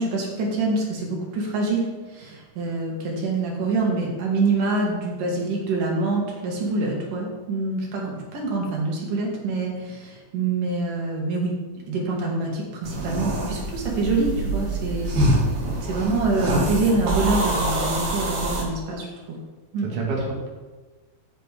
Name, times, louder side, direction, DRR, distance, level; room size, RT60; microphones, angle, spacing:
voice 1, 0.0-1.9 2.1-11.5 11.9-15.3 15.9-19.4 19.7-19.9, right 3 dB, 80° right, -2 dB, 3.6 m, -25 dB
sound 1, 12.8-18.6, right 1 dB, 65° right, 3.4 m, -25 dB
voice 2, 15.6-16.1 19.8-20.5, right 3 dB, 50° right, -2 dB, 2.7 m, -29 dB
13.5 x 8.2 x 3.6 m, 1.3 s
omnidirectional pair, 3.7 m